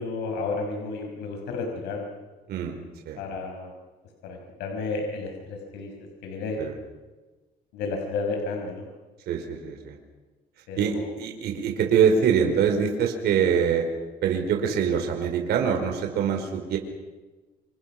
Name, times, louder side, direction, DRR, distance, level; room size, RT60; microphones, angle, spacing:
voice 1, 0.0-2.1 3.2-3.7 4.2-6.6 7.7-8.9 10.7-11.1, left 3 dB, 90° left, 2 dB, 5.7 m, -32 dB
voice 2, 9.3-10.0 10.8-13.9 14.2-16.8, right 7 dB, 75° right, 3 dB, 4.9 m, -24 dB
28.5 x 28.0 x 6.1 m, 1.2 s
cardioid pair, 110°, 17 cm